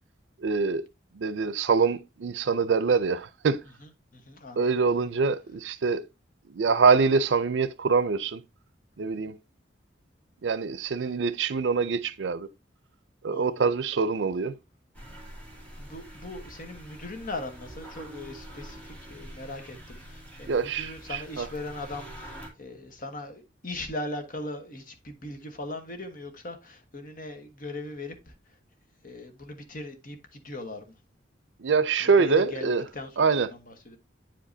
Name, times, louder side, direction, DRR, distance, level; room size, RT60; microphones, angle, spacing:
voice 1, 0.4-0.8 1.2-3.6 4.6-6.0 6.5-8.4 9.0-9.3 10.4-12.5 13.2-14.5 20.5-21.5 31.6-32.8 33.2-33.5, right 5 dB, 80° right, 0.5 m, -24 dB
voice 2, 3.8-5.1 11.0-11.1 13.3-13.7 15.5-28.6 29.0-31.0 32.0-34.0, left 2 dB, 50° left, 1.2 m, -40 dB
sound 1, 14.9-22.5, equal, 10° left, 2.1 m, -45 dB
9.0 x 5.1 x 2.7 m
head